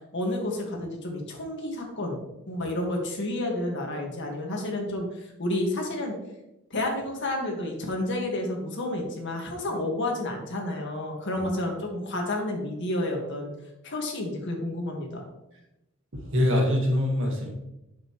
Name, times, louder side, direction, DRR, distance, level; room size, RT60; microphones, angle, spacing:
voice 1, 0.0-2.2 2.5-6.1 6.7-13.5 13.8-15.2, left 1 dB, 60° left, 1 dB, 1.9 m, -30 dB
voice 2, 16.1-17.5, left 1 dB, 65° right, 1 dB, 1.9 m, -24 dB
9.2 x 6.9 x 3.2 m, 0.91 s
head